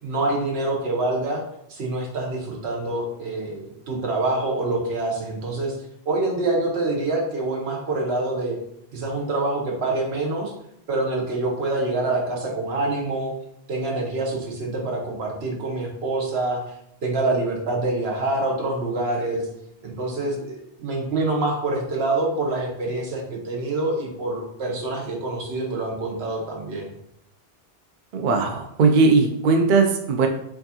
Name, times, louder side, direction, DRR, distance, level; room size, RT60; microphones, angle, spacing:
voice 1, 0.0-1.4 1.7-5.7 6.1-8.6 8.9-10.5 10.9-13.3 13.7-16.6 17.0-19.5 19.8-26.9, right 2 dB, 80° right, 0 dB, 1.1 m, -26 dB
voice 2, 28.1-30.3, right 4 dB, 60° right, 4 dB, 0.6 m, -19 dB
4.5 x 2.5 x 2.8 m, 0.76 s
omnidirectional pair, 1.0 m